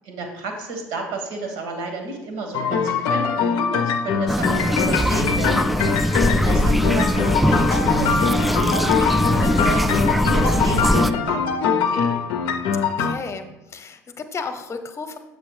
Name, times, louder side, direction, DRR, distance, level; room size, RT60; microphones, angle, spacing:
voice 1, 0.0-6.0 6.4-9.9 10.2-12.2, right 2 dB, 70° right, 3 dB, 1.6 m, -32 dB
sound 1, 2.5-13.1, left 6 dB, 60° left, 0.6 m, -23 dB
sound 2, 4.3-11.1, equal, ahead, 0.3 m, -21 dB
voice 2, 5.8-6.2 12.7-15.2, left 4 dB, 35° left, 7 dB, 0.9 m, -34 dB
7.6 x 6.5 x 3.2 m, 1.0 s
hypercardioid pair, 65°, 9 cm